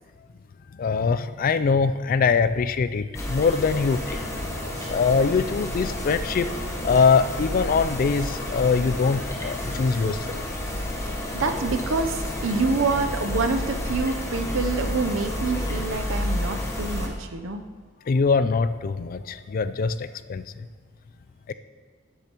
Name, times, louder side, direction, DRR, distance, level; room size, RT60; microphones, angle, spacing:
voice 1, 0.7-4.2 4.9-10.4 18.1-20.4 21.5-21.6, left 5 dB, 45° left, 13 dB, 0.3 m, -23 dB
sound 1, 3.1-17.1, left 1 dB, 15° left, 1.1 m, -30 dB
sound 2, 3.9-15.8, left 3 dB, 80° left, 1.1 m, -42 dB
voice 2, 11.3-17.6, right 4 dB, 80° right, 7 dB, 0.7 m, -27 dB
12.0 x 8.5 x 3.0 m, 1.5 s
head